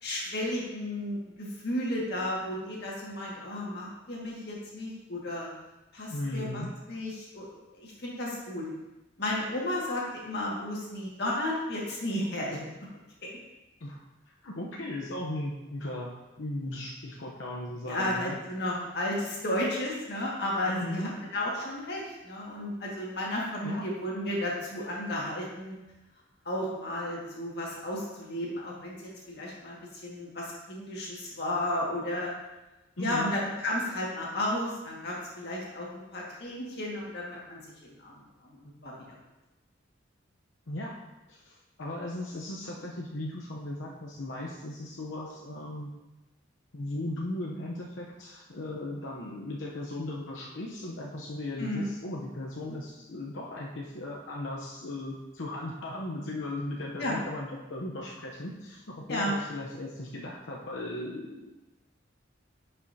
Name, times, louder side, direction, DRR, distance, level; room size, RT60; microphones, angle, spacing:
voice 1, 0.0-5.5 5.9-7.5 7.7-8.7 9.2-12.6 17.9-25.7 26.5-32.3 33.0-38.9 51.6-51.9 57.0-57.2 59.1-59.3, left 1 dB, 55° left, -4 dB, 1.9 m, -33 dB
voice 2, 6.1-6.7 13.8-18.4 20.6-21.1 23.6-23.8 33.0-33.3 40.7-41.0 41.3-45.9 46.7-61.5, left 1 dB, 85° left, -3 dB, 0.9 m, -37 dB
10.5 x 5.5 x 2.8 m, 1.0 s
head